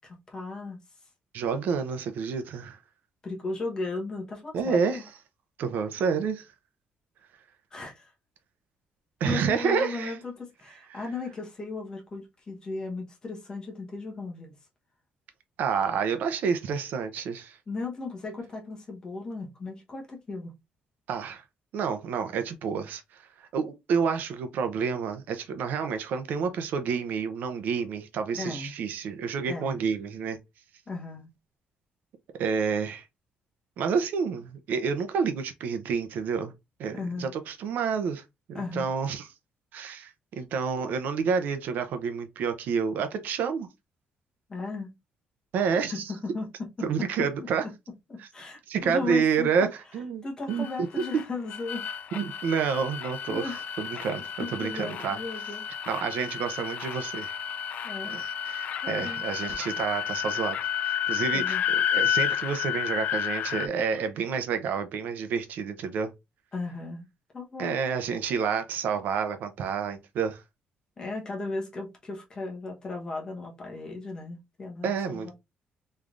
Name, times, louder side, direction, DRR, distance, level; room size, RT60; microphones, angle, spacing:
voice 1, 0.0-0.8 3.2-5.0 7.7-8.1 9.2-14.5 17.7-20.5 28.3-28.7 29.5-29.8 30.9-31.3 36.9-37.3 38.5-38.9 44.5-44.9 45.9-46.5 46.8-47.3 47.6-47.7 48.1-49.7 50.2-51.9 53.3-53.6 54.4-55.6 57.8-58.2 58.8-59.2 61.3-61.6 66.5-67.1 67.3-67.8 71.0-75.3, left 3 dB, 25° left, 1.1 m, -36 dB
voice 2, 1.3-2.8 4.5-5.0 5.6-6.5 9.2-10.2 10.9-11.0 15.6-17.6 21.1-21.4 21.7-30.4 32.4-33.1 33.8-36.5 36.8-38.2 38.5-39.3 39.7-43.7 45.5-46.1 46.8-47.6 48.2-48.3 48.7-49.7 49.9-50.2 50.5-50.7 52.1-55.2 55.9-57.4 58.1-66.1 67.6-70.4 74.8-75.3, right 6 dB, 60° right, 0.6 m, -29 dB
sound 1, 50.5-63.7, left 9 dB, 45° left, 0.3 m, -31 dB
3.6 x 3.2 x 2.5 m
cardioid pair, 175°, 3 cm